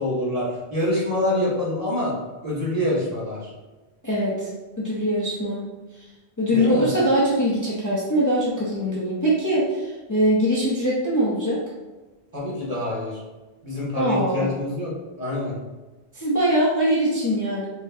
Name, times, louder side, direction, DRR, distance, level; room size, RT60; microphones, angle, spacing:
voice 1, 0.0-2.1 2.4-3.5 6.5-6.9 12.3-13.2 13.6-14.9 15.2-15.5, left 1 dB, 35° right, -7 dB, 1.3 m, -25 dB
voice 2, 4.0-4.5 4.8-5.6 6.4-11.6 13.9-14.5 16.1-17.7, equal, 20° left, -6 dB, 0.7 m, -22 dB
4.7 x 2.9 x 2.7 m, 1.2 s
omnidirectional pair, 1.1 m